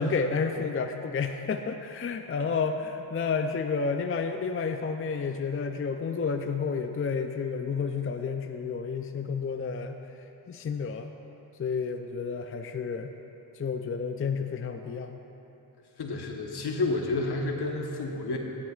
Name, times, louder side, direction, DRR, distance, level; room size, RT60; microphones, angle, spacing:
voice 1, 0.0-10.0 10.5-11.1 11.6-13.1 13.6-15.2, left 5 dB, 30° left, 6 dB, 0.5 m, -30 dB
voice 2, 16.0-18.4, left 2 dB, 60° left, 1 dB, 1.2 m, -30 dB
16.0 x 8.1 x 2.4 m, 3.0 s
cardioid pair, 55°, 44 cm